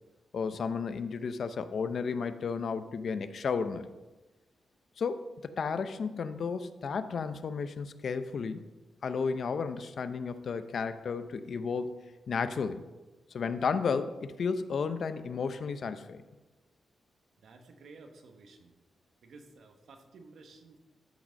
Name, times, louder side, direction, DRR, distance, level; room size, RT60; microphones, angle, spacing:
voice 1, 0.3-3.9 5.0-8.7 9.0-12.0 12.3-12.8 13.3-16.2, left 5 dB, 60° left, 11 dB, 0.7 m, -33 dB
voice 2, 17.4-18.7 19.2-20.8, right 3 dB, 75° right, 4 dB, 1.4 m, -53 dB
12.5 x 6.2 x 5.3 m, 1.1 s
wide cardioid pair, 120°, 0 cm